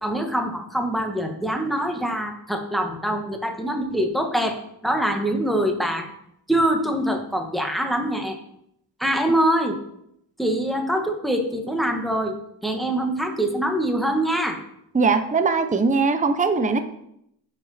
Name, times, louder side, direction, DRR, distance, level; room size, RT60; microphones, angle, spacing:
voice 1, 0.0-6.1 6.5-8.4 9.0-9.8 10.4-12.4 12.6-14.6, right 1 dB, ahead, 4 dB, 1.3 m, -24 dB
voice 2, 14.9-16.8, right 4 dB, 15° right, 8 dB, 0.7 m, -20 dB
9.2 x 4.9 x 4.2 m, 0.75 s
cardioid pair, 80°, 47 cm